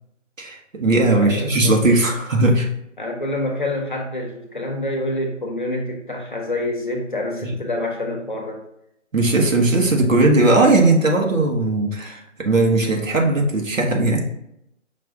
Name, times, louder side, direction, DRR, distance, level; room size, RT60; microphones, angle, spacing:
voice 1, 0.4-2.7 7.4-7.5 9.1-14.2, right 2 dB, 90° right, 1 dB, 1.2 m, -18 dB
voice 2, 1.1-1.8 3.0-8.6, left 1 dB, 40° left, 0 dB, 0.8 m, -27 dB
5.4 x 2.5 x 3.5 m, 0.79 s
figure-of-eight pair, 175°, 38 cm